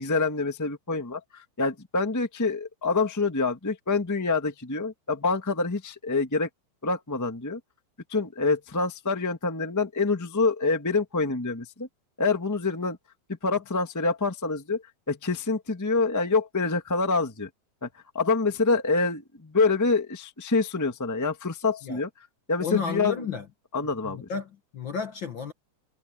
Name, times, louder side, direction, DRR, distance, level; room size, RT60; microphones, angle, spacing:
voice 1, 0.0-6.5 6.8-7.6 8.1-11.9 12.2-13.0 13.4-17.5 17.8-17.9 18.1-22.1 22.5-23.2 23.7-24.3, left 3 dB, 10° left, 0.9 m, -26 dB
voice 2, 22.6-23.5 24.0-25.5, left 6 dB, 50° left, 1.6 m, -32 dB
omnidirectional pair, 3.4 m